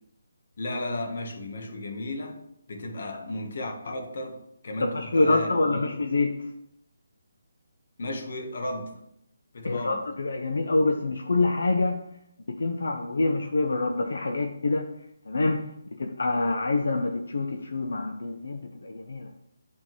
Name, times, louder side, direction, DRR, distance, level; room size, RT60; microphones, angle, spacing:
voice 1, 0.6-5.9 8.0-9.0 9.5-10.0, left 1 dB, 55° left, 3 dB, 1.3 m, -34 dB
voice 2, 4.8-6.4 9.6-12.0 12.5-14.9 15.3-15.7 16.0-19.3, left 2 dB, 80° left, 4 dB, 0.6 m, -26 dB
8.9 x 3.8 x 3.1 m, 0.76 s
hypercardioid pair, 165°, 0 cm